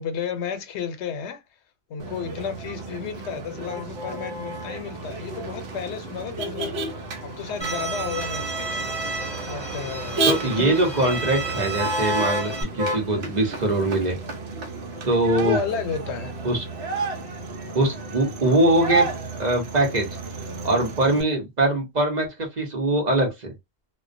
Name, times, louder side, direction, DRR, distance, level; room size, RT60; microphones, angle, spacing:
voice 1, 0.0-1.4 1.9-6.7 7.2-9.0 9.5-10.8 15.4-16.4, left 7 dB, 85° left, 0.9 m, -32 dB
Motor vehicle (road), 2.0-21.2, right 2 dB, 75° right, 0.9 m, -31 dB
Bowed string instrument, 7.6-12.6, right 3 dB, 10° left, 0.6 m, -32 dB
voice 2, 10.3-14.2 15.0-15.6 16.4-16.6 17.7-19.0 19.4-20.1 20.6-23.5, right 1 dB, 45° right, 0.9 m, -22 dB
2.3 x 2.1 x 2.5 m
omnidirectional pair, 1.1 m